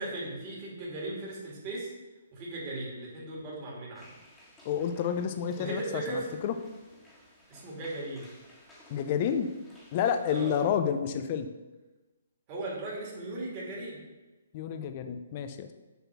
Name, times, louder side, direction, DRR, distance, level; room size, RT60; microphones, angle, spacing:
voice 1, 0.0-1.9 2.3-4.1 5.6-6.3 7.5-8.3 10.3-10.5 12.5-14.0, right 2 dB, 30° right, -5 dB, 2.4 m, -37 dB
sound 1, 3.9-10.7, left 1 dB, 5° left, 1.6 m, -57 dB
voice 2, 4.6-6.5 8.9-9.5 9.9-11.5 14.5-15.7, left 8 dB, 40° left, 8 dB, 0.6 m, -30 dB
6.9 x 4.3 x 5.9 m, 1.2 s
hypercardioid pair, 145°, 0 cm